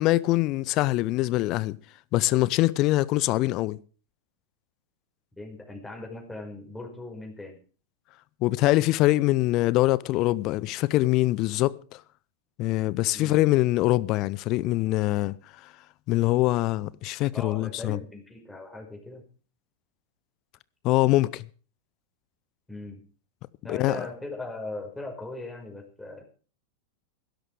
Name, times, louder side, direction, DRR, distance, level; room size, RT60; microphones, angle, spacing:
voice 1, 0.0-1.8 2.1-3.8 8.4-12.0 12.6-15.3 16.1-18.0 20.8-21.5 23.7-24.1, left 18 dB, 40° left, 0.7 m, -23 dB
voice 2, 5.4-7.6 13.1-13.4 17.3-19.2 22.7-23.0 23.6-26.2, left 2 dB, 5° left, 5.4 m, -39 dB
16.5 x 12.5 x 4.8 m
figure-of-eight pair, 90°, 0 cm